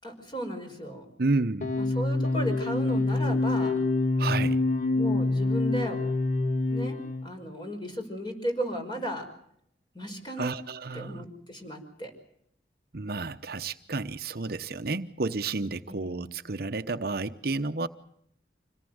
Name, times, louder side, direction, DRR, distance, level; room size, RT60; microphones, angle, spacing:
voice 1, 0.0-1.1 1.8-3.7 5.0-6.0 6.7-9.2 9.9-10.5 10.9-12.1 15.9-16.3, equal, 25° left, 5.4 m, -35 dB
voice 2, 1.2-1.8 4.2-4.6 10.4-11.3 12.9-17.9, right 3 dB, 55° right, 0.9 m, -31 dB
sound 1, 1.6-7.3, left 2 dB, 45° left, 1.4 m, -26 dB
26.5 x 18.5 x 8.0 m
head